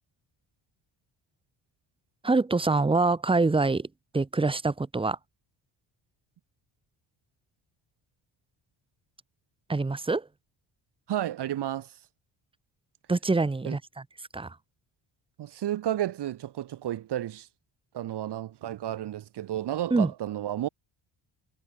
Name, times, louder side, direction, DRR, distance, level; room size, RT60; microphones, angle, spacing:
voice 1, 2.2-3.9 4.1-5.2 9.7-10.3 13.1-13.8 14.3-14.6 19.9-20.1, right 3 dB, 10° right, 0.7 m, -25 dB
voice 2, 11.1-12.0 13.6-13.8 15.4-17.5 17.9-20.7, right 12 dB, 55° right, 1.1 m, -32 dB
cardioid pair, 160°, 48 cm